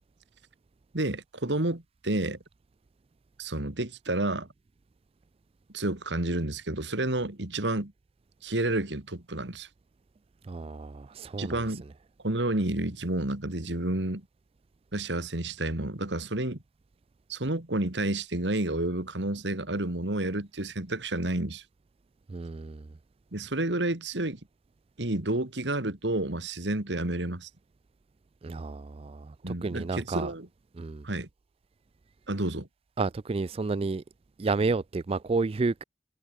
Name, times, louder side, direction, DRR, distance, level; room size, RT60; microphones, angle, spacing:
voice 1, 0.9-2.4 3.4-4.5 5.7-7.9 8.4-9.7 11.4-11.8 12.2-14.2 14.9-16.6 17.3-21.6 23.3-24.4 25.0-27.5 29.4-30.5 31.0-31.3 32.3-32.7, right 2 dB, 80° right, 2.4 m, -30 dB
voice 2, 10.4-11.6 22.3-22.9 28.4-30.3 30.7-31.1 33.0-34.0 34.4-35.8, right 3 dB, 35° right, 0.4 m, -31 dB
head